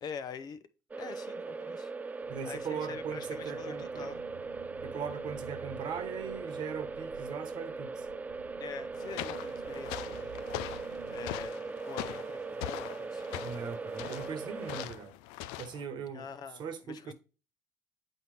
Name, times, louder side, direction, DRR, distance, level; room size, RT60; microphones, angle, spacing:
voice 1, 0.0-0.6 1.0-1.9 2.4-4.2 8.6-10.5 11.1-13.4 16.1-16.6 16.9-17.1, left 6 dB, 50° left, 0.7 m, -45 dB
sound 1, 0.9-14.9, right 4 dB, 20° right, 0.3 m, -40 dB
sound 2, 2.2-11.5, right 11 dB, 90° right, 0.4 m, -52 dB
voice 2, 2.3-4.2 4.8-8.1 13.4-15.1 15.6-16.3 16.5-17.1, right 6 dB, 60° right, 1.1 m, -40 dB
sound 3, 8.9-15.8, left 14 dB, 85° left, 0.4 m, -42 dB
7.9 x 4.2 x 3.3 m
supercardioid pair, 80°, 9 cm